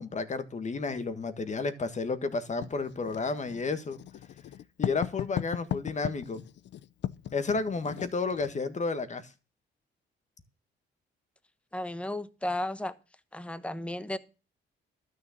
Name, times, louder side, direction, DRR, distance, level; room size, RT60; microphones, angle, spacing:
voice 1, 0.0-4.0 4.8-6.4 7.3-9.2, left 4 dB, 35° left, 1.7 m, -31 dB
Writing, 2.6-8.6, left 11 dB, 65° left, 0.6 m, -37 dB
voice 2, 11.7-12.9 13.3-14.2, left 1 dB, 5° left, 1.1 m, -34 dB
12.5 x 6.7 x 7.4 m
cardioid pair, 90°, 20 cm